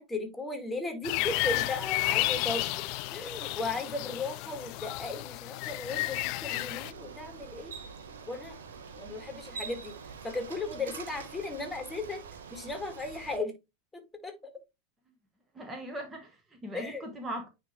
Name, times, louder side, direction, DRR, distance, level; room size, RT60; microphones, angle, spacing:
voice 1, 0.0-7.7 8.3-8.6 9.0-9.9 10.2-12.3 12.5-13.6 13.9-14.4 16.7-17.0, left 3 dB, 10° left, 1.9 m, -36 dB
sound 1, 1.0-6.9, left 18 dB, 50° left, 0.4 m, -32 dB
Bicycle, 6.8-13.4, right 5 dB, 75° right, 1.1 m, -45 dB
voice 2, 15.5-17.5, equal, 15° right, 1.4 m, -39 dB
9.5 x 3.3 x 3.0 m
hypercardioid pair, 90°, 0 cm